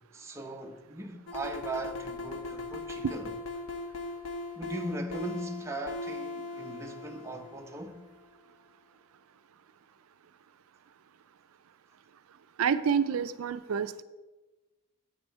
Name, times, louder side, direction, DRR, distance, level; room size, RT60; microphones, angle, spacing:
voice 1, 0.1-3.4 4.6-8.0, right 1 dB, 15° right, 0.7 m, -39 dB
sound 1, 1.3-8.1, left 2 dB, 85° left, 1.1 m, -39 dB
voice 2, 12.6-13.9, right 7 dB, 80° right, 0.4 m, -28 dB
9.7 x 8.0 x 4.5 m
head